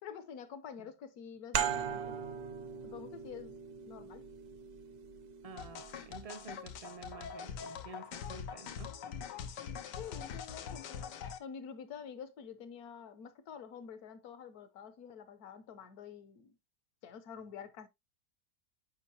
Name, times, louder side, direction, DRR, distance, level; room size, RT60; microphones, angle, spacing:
voice 1, 0.0-2.2 2.8-3.6 3.9-4.3 9.3-9.5 9.8-11.1 11.4-16.6 17.0-17.9, left 7 dB, 65° left, 1.3 m, -48 dB
sound 1, 1.5-6.8, right 8 dB, 65° right, 1.3 m, -40 dB
voice 2, 5.4-9.0, right 3 dB, 30° right, 0.6 m, -50 dB
sound 2, 5.6-11.4, left 7 dB, 85° left, 1.4 m, -43 dB
8.4 x 5.3 x 2.7 m
omnidirectional pair, 1.8 m